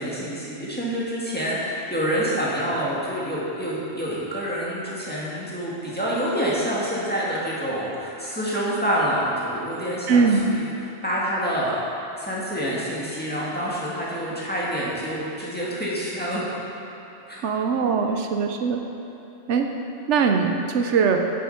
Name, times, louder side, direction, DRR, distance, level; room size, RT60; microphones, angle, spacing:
voice 1, 0.0-10.7 11.0-11.8 12.2-16.5 17.3-17.5, equal, 10° left, -7 dB, 1.9 m, -27 dB
voice 2, 10.1-10.4 17.4-18.8 19.5-19.7 20.1-21.2, right 5 dB, 85° right, 4 dB, 1.0 m, -21 dB
9.0 x 7.4 x 5.7 m, 2.9 s
omnidirectional pair, 1.2 m